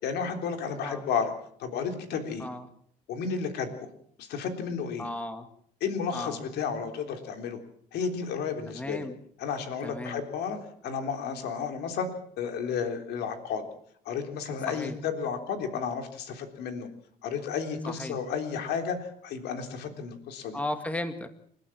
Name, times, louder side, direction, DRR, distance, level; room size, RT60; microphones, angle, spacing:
voice 1, 0.0-1.3 1.6-2.5 3.1-3.9 4.2-5.1 5.8-7.6 7.9-9.0 9.4-10.6 10.8-12.1 12.4-13.7 14.1-16.9 17.2-20.6, left 6 dB, 80° left, 6 dB, 3.7 m, -32 dB
voice 2, 5.0-5.5 6.1-6.4 8.7-9.2 9.8-10.2 14.7-15.0 17.9-18.2 20.5-21.3, left 1 dB, 10° left, 8 dB, 2.0 m, -35 dB
28.5 x 12.5 x 7.5 m, 0.64 s
cardioid pair, 110°, 17 cm